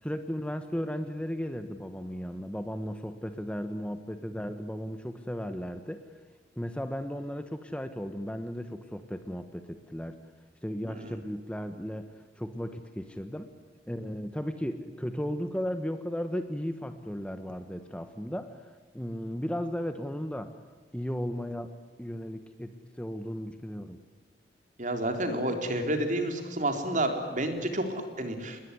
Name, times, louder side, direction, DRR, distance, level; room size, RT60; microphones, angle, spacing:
voice 1, 0.0-6.0 6.6-10.1 10.6-13.5 13.9-18.6 18.9-20.5 20.9-21.7 22.0-24.0, equal, 5° left, 8 dB, 1.2 m, -35 dB
voice 2, 10.8-11.2 24.8-28.6, right 1 dB, 45° right, 5 dB, 3.9 m, -30 dB
27.5 x 21.0 x 9.8 m, 1.4 s
head